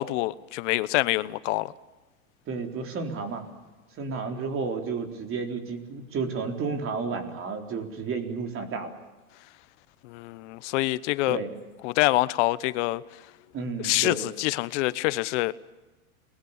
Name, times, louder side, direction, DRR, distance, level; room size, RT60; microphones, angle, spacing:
voice 1, 0.0-1.7 10.0-11.4 11.8-13.0 13.8-15.5, left 19 dB, 55° left, 1.1 m, -26 dB
voice 2, 2.5-3.4 4.0-8.9 11.3-11.5 13.5-14.2, right 5 dB, 30° right, 3.9 m, -32 dB
29.5 x 21.0 x 7.3 m
supercardioid pair, 135°, 42 cm